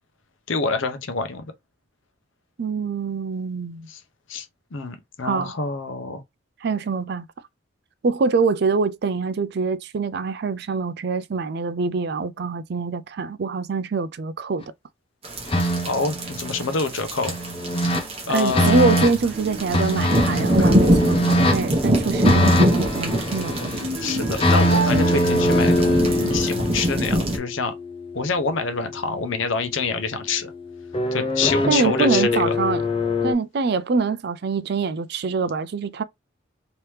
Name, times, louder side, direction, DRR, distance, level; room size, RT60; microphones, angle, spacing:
voice 1, 0.5-1.4 3.9-4.0 4.3-4.5 4.7-6.2 15.8-17.3 17.8-18.0 18.3-18.9 20.6-20.7 24.0-26.0 26.3-27.7 28.1-30.5 31.1-32.6, left 4 dB, 75° left, 0.8 m, -26 dB
voice 2, 2.6-3.9 5.2-5.5 6.6-7.3 8.0-14.6 17.8-17.9 18.3-23.7 31.7-32.8 33.2-36.0, right 4 dB, 55° right, 0.4 m, -24 dB
sound 1, 15.2-27.4, equal, 30° right, 1.0 m, -24 dB
sound 2, 15.5-16.8 17.3-18.0 18.5-19.1 19.7-21.6 22.2-23.8 24.3-28.5 30.9-33.3, left 1 dB, 25° left, 0.5 m, -22 dB
sound 3, 18.7-26.5, right 2 dB, 85° right, 0.7 m, -33 dB
3.3 x 2.9 x 3.1 m
head